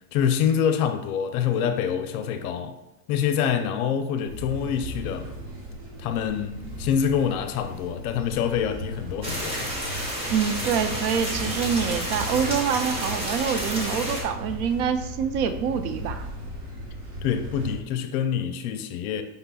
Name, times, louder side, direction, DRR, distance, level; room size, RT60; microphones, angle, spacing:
voice 1, 0.1-2.8 3.1-5.4 6.0-9.7 11.4-11.6 17.2-19.2, left 8 dB, 65° left, 0.6 m, -26 dB
sound 1, 4.2-17.8, equal, 45° right, 1.3 m, -37 dB
sound 2, 9.2-14.2, right 1 dB, 15° right, 0.4 m, -31 dB
voice 2, 10.3-16.2, right 7 dB, 65° right, 0.6 m, -26 dB
5.2 x 4.0 x 2.3 m
supercardioid pair, 150°, 48 cm